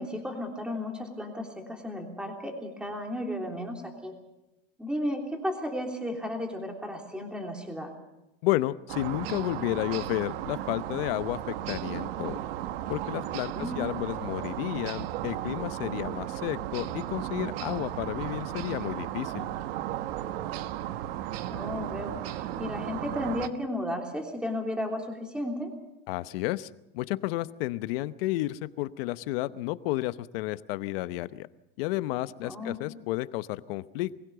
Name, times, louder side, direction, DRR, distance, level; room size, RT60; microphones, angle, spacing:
voice 1, 0.0-4.1 4.8-7.9 13.5-13.9 21.5-25.7 32.4-32.8, left 1 dB, 5° right, 2 dB, 3.2 m, -34 dB
voice 2, 8.4-12.4 12.9-19.5 26.1-26.7 26.9-31.5 31.8-34.3, left 17 dB, 80° left, 14 dB, 0.9 m, -32 dB
sound 1, 8.9-23.5, right 12 dB, 85° right, 1.2 m, -35 dB
23.5 x 16.0 x 6.9 m, 0.95 s
supercardioid pair, 130°, 29 cm